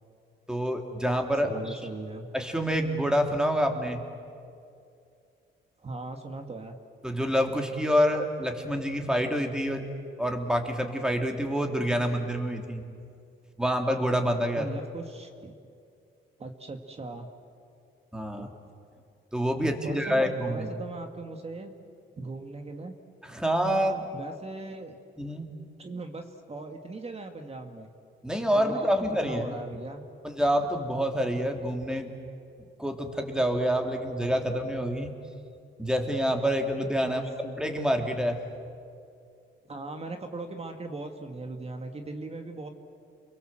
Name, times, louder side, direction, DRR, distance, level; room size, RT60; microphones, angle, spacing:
voice 1, 0.5-1.8 2.3-4.0 7.0-9.8 10.2-12.8 13.6-14.7 18.1-18.5 19.3-20.7 23.3-24.0 25.2-25.5 28.2-29.5 30.2-32.1 32.8-35.1 35.8-37.2 37.6-38.4, equal, 5° right, 3 dB, 3.2 m, -27 dB
voice 2, 1.4-2.3 5.8-6.8 14.6-15.5 16.4-17.3 18.4-18.5 19.6-21.7 22.2-22.9 24.1-25.0 25.8-27.9 28.5-30.0 37.0-37.6 39.7-42.7, right 3 dB, 30° right, 5 dB, 2.1 m, -39 dB
29.5 x 22.5 x 7.7 m, 2.5 s
cardioid pair, 90°, 20 cm